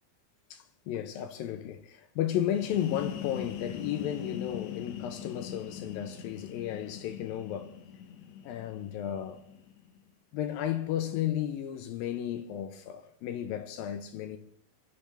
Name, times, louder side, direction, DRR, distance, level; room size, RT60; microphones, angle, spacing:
voice 1, 0.5-7.8 8.4-9.4 10.3-14.4, left 11 dB, 80° left, 2.6 m, -34 dB
sound 1, 2.4-10.0, left 8 dB, 65° left, 1.9 m, -42 dB
23.5 x 13.5 x 3.4 m
omnidirectional pair, 4.2 m